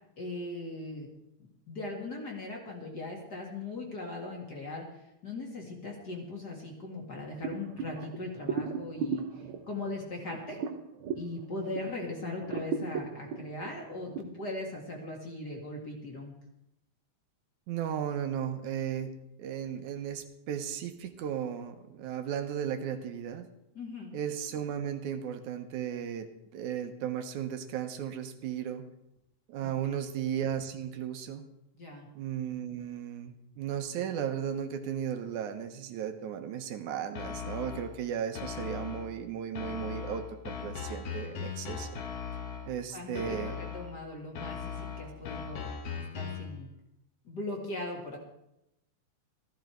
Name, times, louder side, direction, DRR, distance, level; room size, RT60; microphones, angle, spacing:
voice 1, 0.2-1.1 1.7-10.6 11.2-16.3 23.7-24.1 29.6-30.1 31.7-32.1 42.9-46.7 47.2-48.2, left 2 dB, 35° left, 0 dB, 2.3 m, -39 dB
sound 1, 7.4-12.0 12.4-14.2, right 5 dB, 65° right, 1.4 m, -36 dB
voice 2, 17.7-23.5 24.1-28.9 29.5-31.5 32.2-42.0 42.7-43.6, right 9 dB, 90° right, 7 dB, 2.5 m, -35 dB
sound 2, 37.1-38.0 38.3-39.2 39.5-42.8 43.1-44.0 44.3-46.6, left 6 dB, 60° left, 2.2 m, -39 dB
14.0 x 13.0 x 4.6 m, 0.86 s
omnidirectional pair, 3.4 m